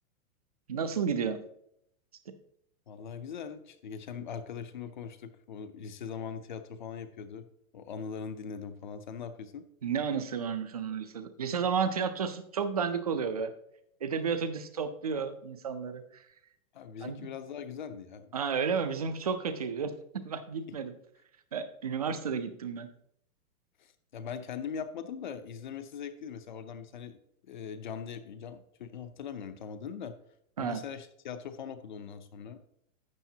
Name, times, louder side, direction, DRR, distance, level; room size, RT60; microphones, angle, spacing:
voice 1, 0.7-1.4 2.3-2.4 9.8-13.5 14.0-16.2 17.0-17.3 18.3-19.9 20.2-20.9 21.5-22.9 30.6-30.8, right 6 dB, 30° right, 10 dB, 0.4 m, -32 dB
voice 2, 2.9-7.5 7.7-9.6 16.7-18.4 23.8-27.2 27.5-30.2 30.6-32.6, left 7 dB, 35° left, 11 dB, 0.6 m, -41 dB
12.0 x 8.0 x 2.7 m, 0.72 s
hypercardioid pair, 175°, 42 cm